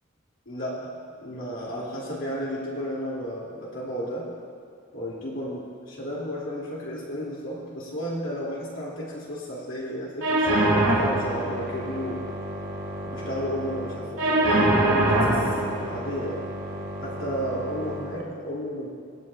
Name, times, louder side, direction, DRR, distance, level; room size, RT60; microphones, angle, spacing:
voice 1, 0.5-0.9 1.2-4.3 4.9-12.3 13.0-15.5 15.9-16.5 17.0-18.9, equal, 70° left, -6 dB, 2.7 m, -33 dB
sound 1, 10.2-18.2, right 1 dB, 65° right, 2.0 m, -25 dB
24.5 x 8.3 x 2.4 m, 2.3 s
head